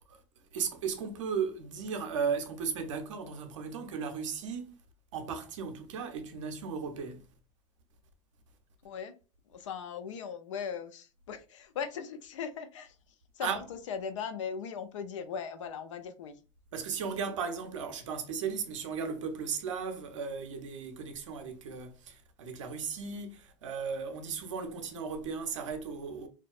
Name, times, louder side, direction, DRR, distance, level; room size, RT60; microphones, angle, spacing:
voice 1, 0.5-4.7 5.1-7.2 13.4-13.6 16.7-26.3, right 6 dB, 85° right, 0.5 m, -36 dB
voice 2, 8.8-9.1 9.5-13.0 13.4-16.3, left 7 dB, 85° left, 0.4 m, -39 dB
2.4 x 2.2 x 2.3 m
hypercardioid pair, 85°, 16 cm